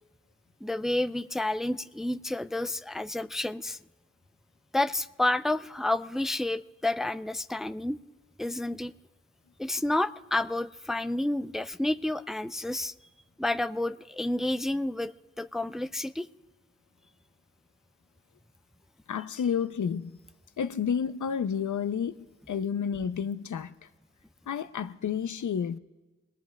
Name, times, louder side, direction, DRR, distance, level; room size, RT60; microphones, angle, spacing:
voice 1, 0.6-3.8 4.7-8.0 8.4-8.9 9.6-12.9 13.4-16.3, left 1 dB, ahead, 0.4 m, -30 dB
voice 2, 19.1-20.2 20.6-23.7 24.5-25.8, left 7 dB, 85° left, 0.6 m, -30 dB
27.0 x 19.0 x 2.2 m
wide cardioid pair, 55°, 29 cm